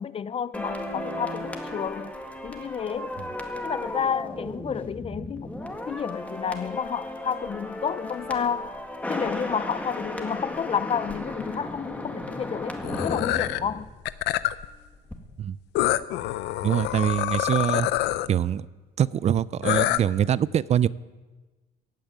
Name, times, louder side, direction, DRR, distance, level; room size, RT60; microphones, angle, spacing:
voice 1, 0.0-2.1 2.4-3.1 3.6-5.5 5.9-8.8 9.1-13.9, left 7 dB, 35° left, 0.5 m, -30 dB
sound 1, 0.5-14.7 14.9-15.2, left 1 dB, 10° left, 1.9 m, -35 dB
sound 2, 12.8-13.6 14.0-14.6 15.7-18.3 19.6-20.0, left 15 dB, 85° left, 0.6 m, -26 dB
voice 2, 16.6-17.9 18.3-18.7 19.0-20.9, right 10 dB, 40° right, 0.4 m, -24 dB
15.5 x 8.7 x 9.3 m
cardioid pair, 110°, 17 cm